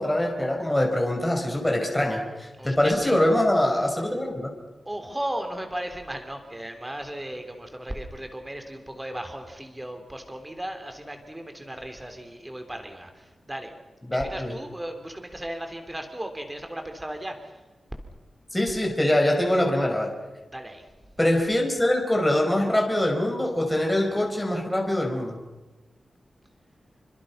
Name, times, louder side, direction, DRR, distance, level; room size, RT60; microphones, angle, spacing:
voice 1, 0.0-4.5 14.1-14.5 18.5-20.1 21.2-25.4, left 1 dB, 10° left, 1 dB, 4.5 m, -23 dB
voice 2, 2.6-3.2 4.9-13.7 14.1-17.5 20.5-20.8, right 1 dB, 10° right, 6 dB, 3.7 m, -36 dB
28.5 x 25.5 x 5.9 m, 1.1 s
wide cardioid pair, 145°, 0 cm